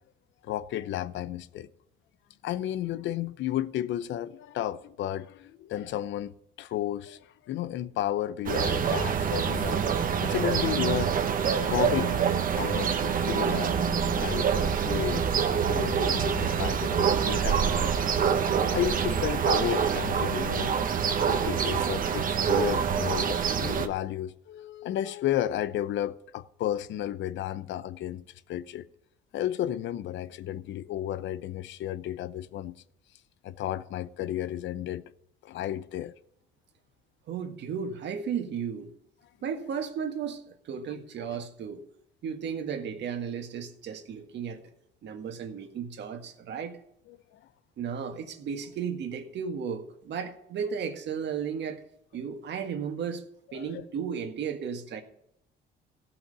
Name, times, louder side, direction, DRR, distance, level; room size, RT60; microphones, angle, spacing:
voice 1, 0.4-1.7 2.4-6.3 6.6-7.2 7.5-9.8 10.2-11.1 11.6-12.2 12.5-13.7 14.1-15.3 15.6-18.1 18.7-20.8 21.3-28.2 28.5-28.8 29.3-32.7 33.4-35.0 35.4-36.1 41.3-41.4 47.1-47.2 53.5-53.8, left 12 dB, 70° left, 0.7 m, -32 dB
sound 1, 8.5-23.9, right 7 dB, 45° right, 1.1 m, -26 dB
voice 2, 37.3-38.9 39.4-41.8 42.2-44.6 45.0-46.8 47.8-51.8 52.1-53.2 53.5-55.0, right 7 dB, 60° right, 1.7 m, -34 dB
15.5 x 6.0 x 6.6 m
cardioid pair, 125°, 20 cm